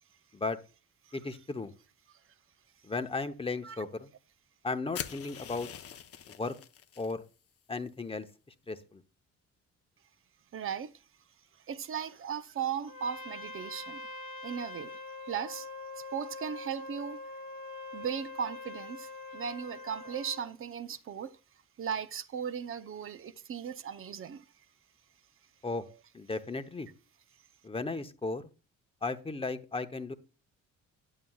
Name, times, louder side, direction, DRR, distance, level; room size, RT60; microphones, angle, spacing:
voice 1, 1.1-1.7 2.8-4.1 4.6-5.7 6.4-6.5 7.0-7.2 7.7-8.3 8.7-9.0 25.6-25.8 26.1-26.9 27.6-28.4 29.0-30.1, left 3 dB, 20° left, 0.9 m, -35 dB
sound 1, 4.9-7.1, left 8 dB, 50° left, 0.8 m, -43 dB
voice 2, 10.5-10.9 11.7-14.1 14.4-15.0 15.2-15.7 16.0-17.2 17.9-21.4 21.8-24.4 25.9-26.0, right 7 dB, 45° right, 0.7 m, -37 dB
Trumpet, 12.9-20.5, left 2 dB, 85° left, 1.8 m, -44 dB
9.3 x 8.4 x 2.3 m
cardioid pair, 90°, 30 cm